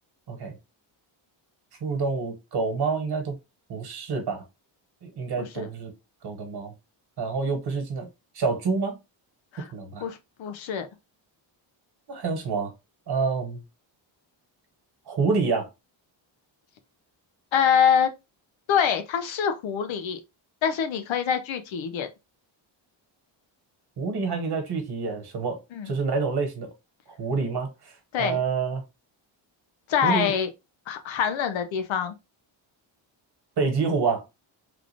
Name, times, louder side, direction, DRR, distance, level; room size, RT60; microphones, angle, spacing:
voice 1, 1.8-3.4 3.7-4.4 5.0-5.9 6.2-6.7 7.2-8.1 8.3-9.0 9.7-10.0 12.1-12.7 13.1-13.6 15.1-15.7 24.0-25.6 25.8-26.7 27.2-27.9 28.2-28.8 30.0-30.3 33.6-34.2, right 4 dB, 55° right, 1.4 m, -27 dB
voice 2, 5.4-5.7 9.5-9.7 10.0-10.9 17.5-18.1 18.7-20.2 20.6-22.1 25.7-25.9 28.1-28.4 29.9-30.5 30.9-32.1, left 8 dB, 75° left, 0.7 m, -25 dB
3.5 x 2.5 x 3.3 m
cardioid pair, 140°, 47 cm